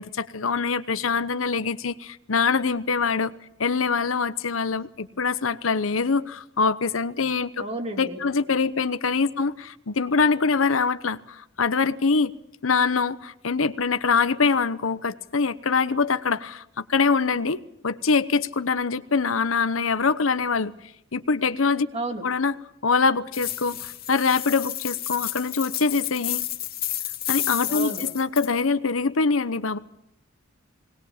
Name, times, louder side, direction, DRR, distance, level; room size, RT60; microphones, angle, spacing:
voice 1, 0.0-3.3 3.6-7.6 8.0-12.3 12.6-20.7 21.1-21.9 22.2-22.5 22.8-26.4 27.3-29.8, left 4 dB, 85° left, 13 dB, 0.9 m, -24 dB
voice 2, 7.6-8.2 21.9-22.2 27.7-28.0, right 2 dB, 30° right, 3 dB, 3.3 m, -31 dB
sound 1, 23.3-28.5, left 13 dB, 50° left, 2.2 m, -31 dB
20.5 x 20.0 x 7.3 m, 0.82 s
head